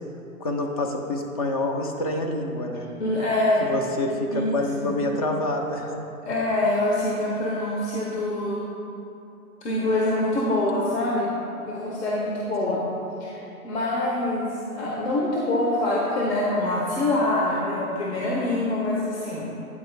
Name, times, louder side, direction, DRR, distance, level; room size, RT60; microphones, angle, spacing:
voice 1, 0.4-2.9 3.6-6.0 12.6-12.8, left 2 dB, 30° left, 3 dB, 0.4 m, -27 dB
voice 2, 3.0-3.7 4.3-4.9 6.2-8.6 9.6-11.3 11.6-12.8 13.2-19.5, left 1 dB, 50° left, -4 dB, 0.9 m, -25 dB
8.5 x 4.3 x 3.2 m, 2.9 s
figure-of-eight pair, 115°, 44 cm